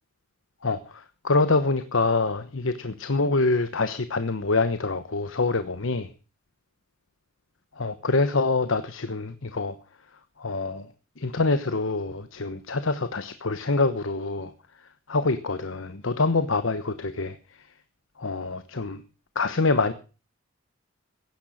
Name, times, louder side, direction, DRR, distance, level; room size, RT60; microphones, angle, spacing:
voice 1, 0.6-6.1 7.8-9.8 10.4-10.9 11.2-14.5 15.1-17.4 18.2-19.0 19.3-19.9, left 3 dB, 70° left, 11 dB, 1.1 m, -25 dB
16.5 x 10.5 x 6.4 m, 0.37 s
head